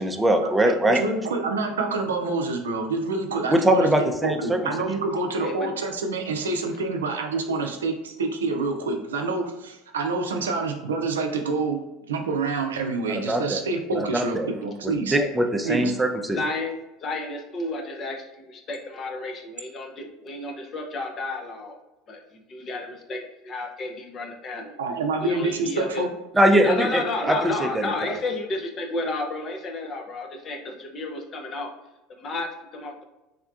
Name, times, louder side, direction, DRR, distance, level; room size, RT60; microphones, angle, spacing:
voice 1, 0.0-1.0 3.5-4.6 13.1-13.6 14.0-14.1 14.3-14.5 14.8-16.4 26.3-27.4 27.6-28.1, right 1 dB, 10° right, 4 dB, 0.4 m, -22 dB
voice 2, 0.6-15.2 15.6-15.9 24.8-26.1, right 3 dB, 85° right, 4 dB, 0.4 m, -27 dB
voice 3, 5.4-5.7 15.1-15.3 15.6-15.8 16.3-16.7 17.0-21.8 22.1-24.7 25.2-26.1 26.6-31.7 32.1-33.0, left 2 dB, 40° left, 2 dB, 0.6 m, -32 dB
3.5 x 2.2 x 2.4 m, 1.0 s
hypercardioid pair, 75°, 0 cm